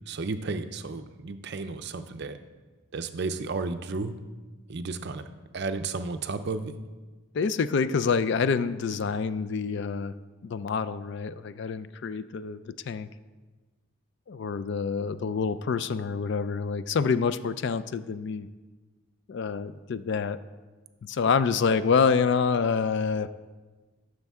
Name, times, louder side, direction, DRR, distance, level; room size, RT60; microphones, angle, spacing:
voice 1, 0.1-2.4 2.9-4.1 4.7-5.2 5.5-6.7, right 3 dB, 50° right, 9 dB, 0.5 m, -33 dB
voice 2, 7.3-10.1 10.4-13.1 14.3-18.5 19.3-20.4 21.0-23.3, left 5 dB, 50° left, 14 dB, 0.3 m, -27 dB
13.5 x 6.5 x 3.5 m, 1.3 s
head